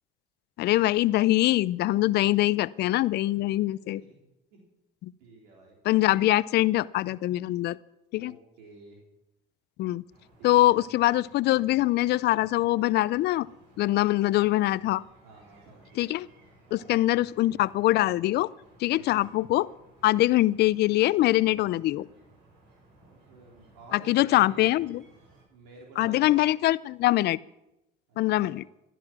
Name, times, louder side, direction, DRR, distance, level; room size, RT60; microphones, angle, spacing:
voice 1, 0.6-4.0 5.0-5.1 5.9-7.8 8.1-8.3 9.8-10.0 10.4-13.5 13.8-15.0 16.0-16.3 16.7-18.5 18.8-19.7 20.0-22.0 23.9-25.0 26.0-27.4 28.2-28.6, left 16 dB, 60° left, 20 dB, 0.5 m, -23 dB
voice 2, 3.8-4.2 4.5-4.6 5.2-5.8 8.2-9.0 10.4-10.7 15.2-16.1 16.7-16.9 18.9-19.2 23.0-24.8 25.5-26.5 28.1-28.6, right 3 dB, 85° right, -2 dB, 3.7 m, -51 dB
sound 1, 10.1-25.4, right 2 dB, 70° right, 7.4 m, -59 dB
15.5 x 12.0 x 6.1 m, 0.89 s
supercardioid pair, 80°, 19 cm